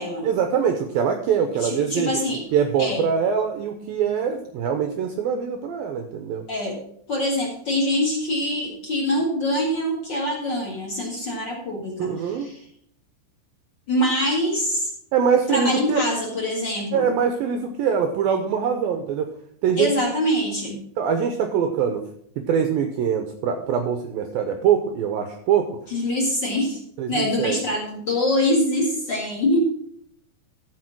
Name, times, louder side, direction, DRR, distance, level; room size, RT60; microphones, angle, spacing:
voice 1, 0.2-2.2 2.5-6.5 12.0-12.5 15.1-16.0 16.9-19.3 19.6-19.9 21.0-22.0 22.4-25.8 27.0-27.6, right 7 dB, 90° right, 6 dB, 2.1 m, -23 dB
voice 2, 1.5-2.4 2.8-3.0 6.5-6.8 7.1-12.6 13.9-14.9 15.5-17.1 19.8-20.8 25.9-26.8 27.1-29.6, left 1 dB, 60° left, -1 dB, 1.1 m, -24 dB
14.0 x 5.2 x 5.9 m, 0.67 s
omnidirectional pair, 5.1 m